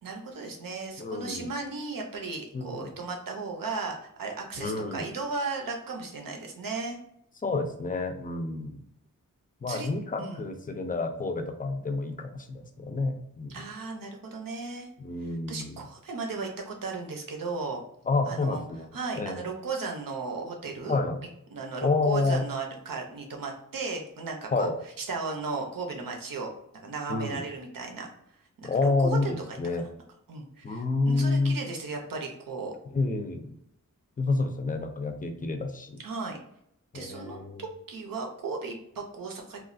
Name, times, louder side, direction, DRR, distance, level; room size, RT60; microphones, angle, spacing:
voice 1, 0.0-7.0 9.7-9.9 10.2-10.4 13.5-14.9 15.2-17.8 18.3-18.6 18.9-21.0 21.5-24.7 25.0-26.5 26.8-28.1 28.6-29.6 30.3-32.7 36.0-36.4 36.9-39.6, right 4 dB, 90° right, 1 dB, 0.7 m, -35 dB
voice 2, 1.0-1.5 2.5-2.9 4.6-5.1 7.4-8.8 9.6-13.6 15.0-15.8 18.1-18.9 19.2-19.4 20.9-21.2 21.8-22.5 24.5-24.7 27.1-27.4 28.6-29.3 29.6-29.9 30.6-31.6 32.9-33.6 34.2-36.0 36.9-37.6, left 3 dB, 25° left, 6 dB, 0.4 m, -29 dB
3.0 x 2.3 x 2.5 m, 0.75 s
wide cardioid pair, 95°, 33 cm